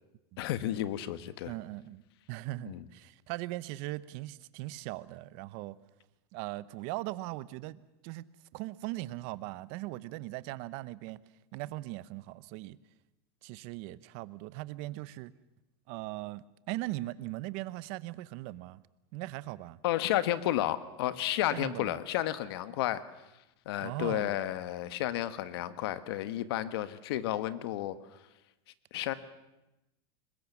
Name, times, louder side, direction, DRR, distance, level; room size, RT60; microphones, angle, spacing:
voice 1, 0.4-1.5 2.7-2.8 19.8-23.1 23.6-27.9 28.9-29.1, left 13 dB, 70° left, 1.4 m, -32 dB
voice 2, 1.4-2.0 2.3-5.8 6.3-8.3 8.5-11.2 11.5-12.8 13.4-15.3 15.9-18.8 19.1-19.8 21.5-22.0 23.8-24.4, right 18 dB, 50° right, 0.8 m, -39 dB
22.5 x 20.5 x 7.2 m
supercardioid pair, 150°, 13 cm